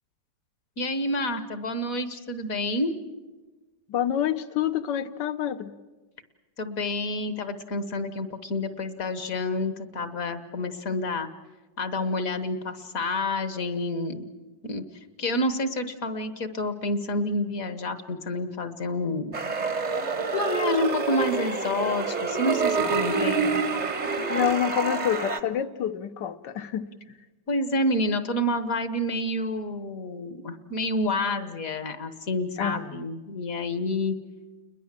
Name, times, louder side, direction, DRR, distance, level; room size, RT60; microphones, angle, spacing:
voice 1, 0.8-2.9 6.6-11.3 11.8-14.2 14.6-14.8 15.2-19.3 20.3-23.5 27.5-34.2, left 1 dB, 50° left, 11 dB, 1.5 m, -28 dB
voice 2, 3.9-5.7 22.8-23.7 24.3-26.8 32.6-33.0, left 9 dB, 70° left, 12 dB, 1.6 m, -28 dB
sound 1, 19.3-25.4, right 4 dB, 30° right, 0.9 m, -27 dB
29.5 x 21.5 x 7.5 m, 1.2 s
omnidirectional pair, 2.0 m